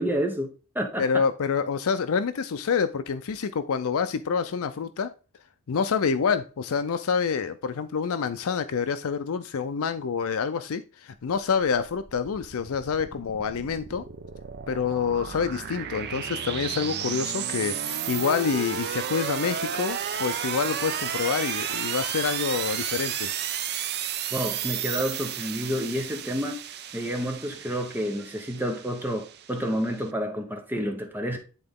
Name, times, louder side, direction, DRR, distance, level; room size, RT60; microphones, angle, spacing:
voice 1, 0.0-1.2 24.3-26.6 26.9-31.4, equal, 10° right, 0.9 m, -29 dB
voice 2, 1.0-5.1 5.7-14.0 14.7-23.3, left 6 dB, 65° left, 0.5 m, -27 dB
sound 1, 11.4-30.0, right 9 dB, 45° right, 0.6 m, -33 dB
10.0 x 3.8 x 3.6 m
head